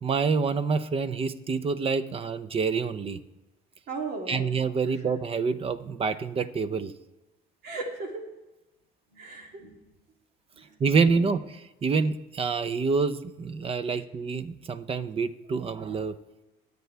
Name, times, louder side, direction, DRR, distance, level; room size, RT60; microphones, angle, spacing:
voice 1, 0.0-3.2 4.3-6.9 10.8-16.1, right 5 dB, 35° right, 13 dB, 0.7 m, -27 dB
voice 2, 3.9-4.5 7.6-8.2 9.1-9.8 10.5-10.7 11.1-11.3, right 3 dB, 70° right, 1 dB, 2.8 m, -36 dB
21.0 x 8.2 x 3.4 m, 1.1 s
cardioid pair, 110°, 17 cm